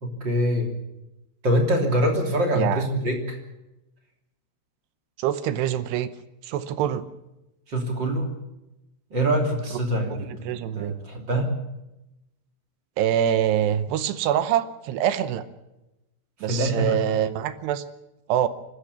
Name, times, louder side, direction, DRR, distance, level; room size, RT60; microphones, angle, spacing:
voice 1, 0.0-0.7 1.4-3.4 7.7-8.3 9.1-10.5 10.7-11.5 16.5-17.0, equal, 30° right, 2 dB, 2.9 m, -24 dB
voice 2, 5.2-6.1 6.4-7.0 10.5-10.9 13.0-15.4 16.4-17.8 18.3-18.5, right 10 dB, 75° right, 12 dB, 2.7 m, -24 dB
25.5 x 13.5 x 8.5 m, 0.94 s
omnidirectional pair, 5.6 m